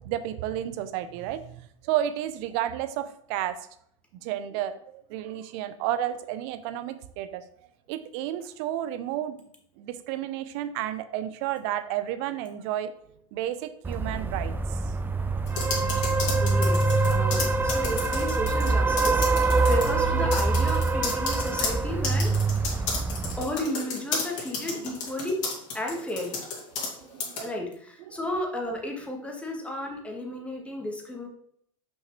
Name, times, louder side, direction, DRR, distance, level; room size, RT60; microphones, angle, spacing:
voice 1, 0.0-3.6 4.2-7.4 7.9-9.4 9.8-12.9 13.3-14.8 22.8-23.0 24.6-24.9 26.8-27.5 28.1-28.2, right 12 dB, 55° right, 0.7 m, -32 dB
sound 1, 13.8-23.4, right 3 dB, 10° right, 0.4 m, -25 dB
sound 2, 15.5-18.7 19.0-19.9 20.3-26.9 27.2-27.4, left 4 dB, 50° left, 2.4 m, -32 dB
voice 2, 16.4-19.3 19.7-22.3 23.4-25.4 25.7-26.4 27.4-31.3, left 1 dB, 5° left, 1.5 m, -33 dB
5.9 x 5.5 x 3.2 m
hypercardioid pair, 95°, 17 cm